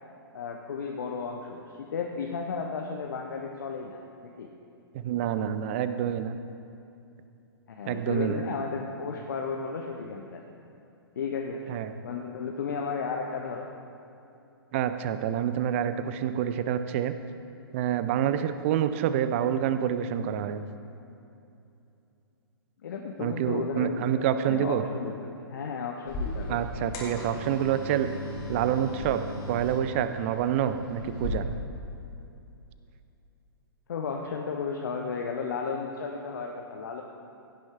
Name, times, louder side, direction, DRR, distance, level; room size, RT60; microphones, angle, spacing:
voice 1, 0.3-4.5 7.7-10.4 11.2-11.6 12.0-13.7 22.8-27.2 33.9-37.0, left 5 dB, 50° left, 2 dB, 0.9 m, -34 dB
voice 2, 4.9-6.3 7.9-8.4 11.7-11.9 14.7-17.1 17.7-20.6 23.2-24.8 26.5-28.1 28.5-29.2 29.5-31.4, right 10 dB, 30° right, 11 dB, 0.5 m, -27 dB
sound 1, 26.1-31.3, left 1 dB, 30° left, 2.2 m, -37 dB
16.5 x 9.1 x 3.6 m, 2.7 s
figure-of-eight pair, 115°, 13 cm